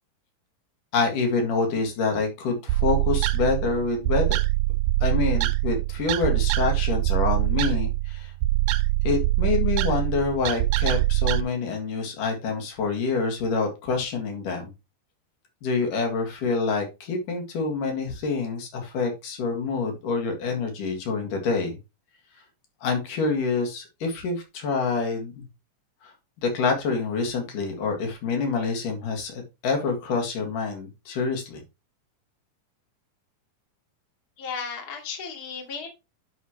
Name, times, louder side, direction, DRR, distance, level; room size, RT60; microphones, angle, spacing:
voice 1, 0.9-4.2 5.0-8.3 9.0-14.7 15.6-21.8 22.8-25.5 26.0-31.6, left 4 dB, 70° left, 3 dB, 3.3 m, -27 dB
sound 1, 2.7-11.4, right 18 dB, 80° right, 1.9 m, -24 dB
voice 2, 34.4-35.9, left 6 dB, 30° left, 1 dB, 2.3 m, -34 dB
10.5 x 5.0 x 3.0 m, 0.25 s
omnidirectional pair, 4.0 m